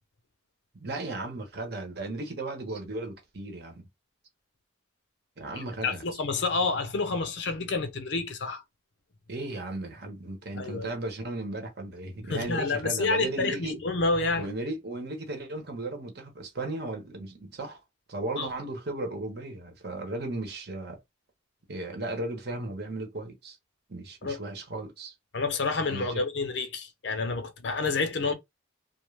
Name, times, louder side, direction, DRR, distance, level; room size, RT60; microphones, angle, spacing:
voice 1, 0.7-3.9 5.4-6.0 9.3-13.8 14.3-17.8 18.1-21.0 21.7-23.6 23.9-25.1 25.9-26.2, right 2 dB, 55° right, 0.9 m, -35 dB
voice 2, 5.8-8.6 10.6-10.9 12.3-14.5 18.4-18.5 24.2-24.4 25.3-28.3, left 3 dB, 60° left, 0.6 m, -29 dB
2.4 x 2.2 x 3.2 m
head